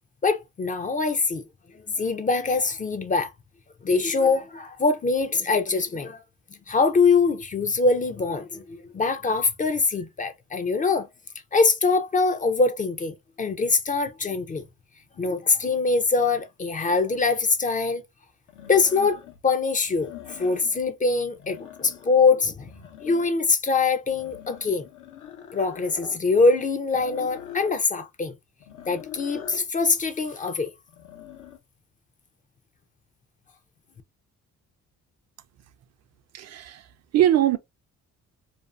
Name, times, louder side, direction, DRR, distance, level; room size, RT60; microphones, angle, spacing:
voice 1, 0.2-1.4 2.0-3.3 3.8-6.2 6.7-11.1 11.5-14.6 15.2-18.0 18.7-22.7 23.0-24.9 25.5-28.3 28.9-30.7, left 4 dB, 25° left, 0.4 m, -23 dB
sound 1, 17.1-17.2 18.5-19.4 19.8-20.9 21.3-22.2 22.6-23.5 24.1-26.2 26.9-27.8 28.6-29.7 30.9-31.6, left 9 dB, 85° left, 0.8 m, -43 dB
voice 2, 36.3-36.9 37.1-37.6, right 12 dB, 60° right, 0.4 m, -21 dB
2.5 x 2.4 x 2.3 m
cardioid pair, 90°, 30 cm